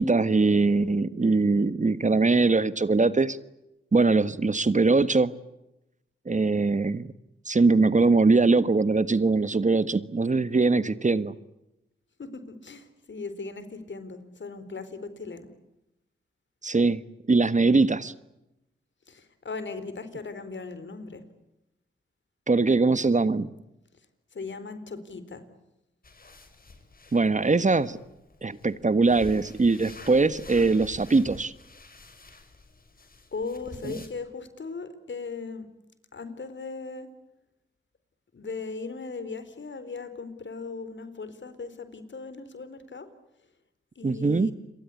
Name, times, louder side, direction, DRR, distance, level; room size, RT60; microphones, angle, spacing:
voice 1, 0.0-3.4 3.9-5.3 6.3-7.1 7.4-11.3 16.6-17.0 17.3-18.1 22.5-23.5 27.1-28.0 28.4-31.5 33.8-33.9 44.0-44.5, right 3 dB, 35° right, 15 dB, 1.4 m, -22 dB
voice 2, 12.2-15.5 19.1-21.2 24.3-25.4 33.3-35.7 36.1-37.1 38.3-43.1 44.0-44.5, left 4 dB, 60° left, 12 dB, 4.2 m, -38 dB
sound 1, 26.0-34.1, left 3 dB, 45° left, 5.7 m, -48 dB
29.0 x 23.0 x 8.5 m, 0.90 s
cardioid pair, 50°, 21 cm